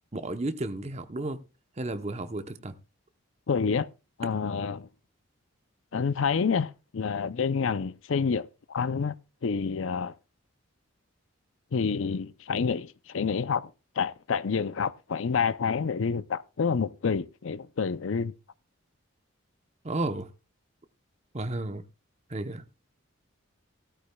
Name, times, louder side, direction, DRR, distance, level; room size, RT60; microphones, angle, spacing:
voice 1, 0.1-1.4 1.8-2.7 19.8-20.3 21.3-21.8 22.3-22.6, right 2 dB, 30° right, 0.8 m, -32 dB
voice 2, 3.5-3.9 4.2-4.9 5.9-9.1 9.4-10.1 11.7-13.7 14.0-18.3, left 5 dB, 70° left, 0.5 m, -28 dB
16.0 x 13.5 x 2.3 m
head